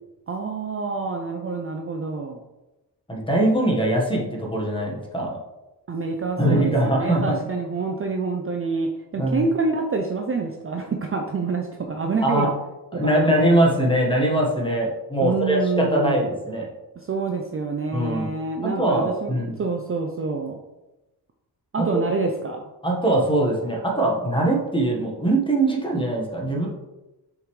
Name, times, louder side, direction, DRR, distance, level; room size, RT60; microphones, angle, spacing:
voice 1, 0.3-2.4 5.9-12.5 13.0-13.4 15.2-16.2 17.0-20.6 21.7-22.6, right 4 dB, 35° right, 2 dB, 0.5 m, -27 dB
voice 2, 3.1-5.4 6.4-7.3 9.2-9.4 12.2-12.5 12.9-16.7 17.9-18.3 18.6-19.6 21.8-21.9 22.8-26.7, right 1 dB, 10° left, -2 dB, 1.3 m, -22 dB
6.4 x 5.0 x 3.2 m, 1.0 s
wide cardioid pair, 145°, 41 cm